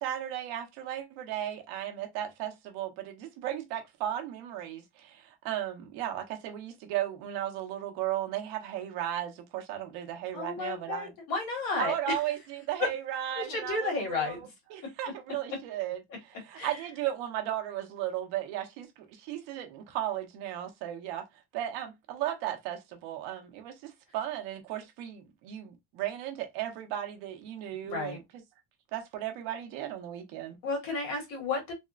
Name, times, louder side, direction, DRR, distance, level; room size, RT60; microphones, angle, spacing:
voice 1, 0.0-11.1 11.8-21.2 21.5-28.2 28.9-30.6, right 12 dB, 80° right, 0.9 m, -35 dB
voice 2, 10.3-11.9 13.4-14.5 16.5-16.7 27.8-28.2 30.6-31.7, left 3 dB, 50° left, 1.5 m, -32 dB
3.5 x 2.0 x 2.4 m
cardioid pair, 180°, 43 cm